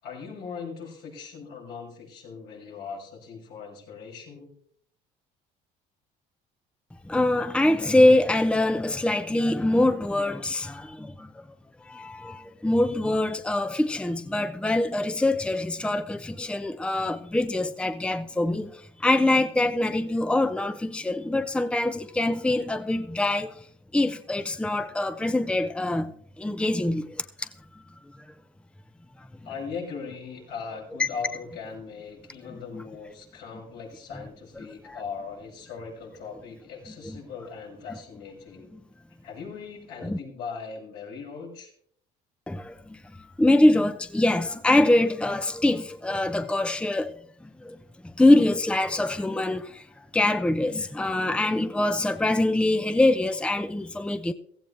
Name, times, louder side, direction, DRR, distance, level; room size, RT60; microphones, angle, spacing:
voice 1, 0.0-4.5 29.4-38.7 39.2-41.7, left 5 dB, 70° left, 6.9 m, -39 dB
voice 2, 7.0-11.4 11.8-23.7 23.9-26.1 26.4-27.8 29.2-29.3 31.0-31.1 34.9-35.0 37.0-37.2 40.0-40.2 42.5-47.8 48.0-54.3, left 1 dB, 5° left, 0.7 m, -24 dB
16.0 x 15.5 x 3.4 m
supercardioid pair, 90°, 18 cm